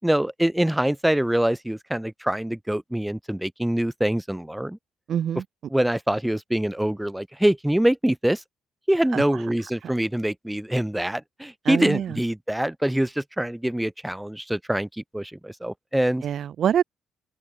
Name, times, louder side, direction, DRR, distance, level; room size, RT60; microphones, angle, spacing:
voice 1, 0.0-4.8 5.7-8.4 8.9-16.2, right 1 dB, 5° right, 5.1 m, -24 dB
voice 2, 5.1-5.4 9.1-9.2 11.7-12.1 16.2-16.8, right 9 dB, 65° right, 0.9 m, -24 dB
open air
cardioid pair, 90°, 0 cm